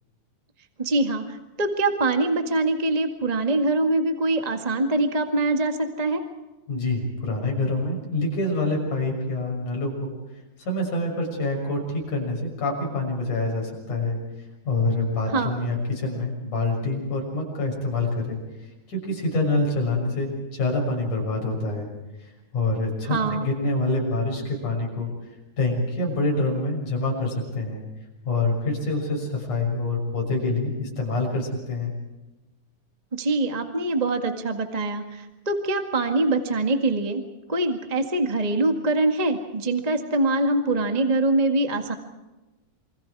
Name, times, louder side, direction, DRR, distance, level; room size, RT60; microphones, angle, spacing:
voice 1, 0.8-6.2 15.3-15.5 23.1-23.5 33.1-37.2 37.5-41.9, right 2 dB, 20° right, 5 dB, 1.2 m, -24 dB
voice 2, 6.7-10.1 10.6-14.2 14.7-18.4 18.9-21.9 22.2-25.1 25.6-27.8 28.3-31.9, left 2 dB, 70° left, 0 dB, 7.9 m, -26 dB
27.5 x 25.5 x 4.8 m, 1.1 s
omnidirectional pair, 3.6 m